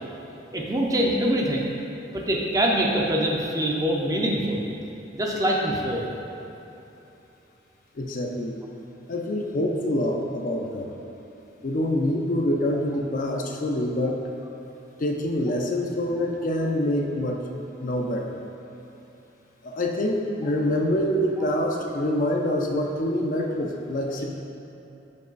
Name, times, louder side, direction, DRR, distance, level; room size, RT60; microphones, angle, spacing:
voice 1, 0.5-1.7 2.1-4.7 5.1-6.1, right 1 dB, 20° right, -1 dB, 0.6 m, -24 dB
voice 2, 8.0-8.6 9.1-10.9 11.6-14.3 15.0-18.4 19.6-24.2, left 1 dB, 45° left, 1 dB, 0.5 m, -26 dB
5.4 x 5.3 x 3.9 m, 3.0 s
head